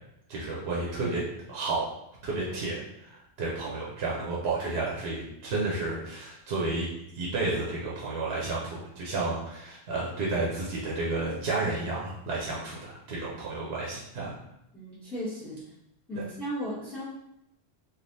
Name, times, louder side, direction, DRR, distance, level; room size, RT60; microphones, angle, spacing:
voice 1, 0.3-1.2 1.5-1.9 2.2-2.8 3.0-14.3, right 3 dB, 70° right, -5 dB, 0.9 m, -31 dB
voice 2, 14.7-15.6 16.1-17.1, equal, ahead, -12 dB, 0.7 m, -35 dB
3.3 x 2.5 x 2.6 m, 0.80 s
omnidirectional pair, 1.1 m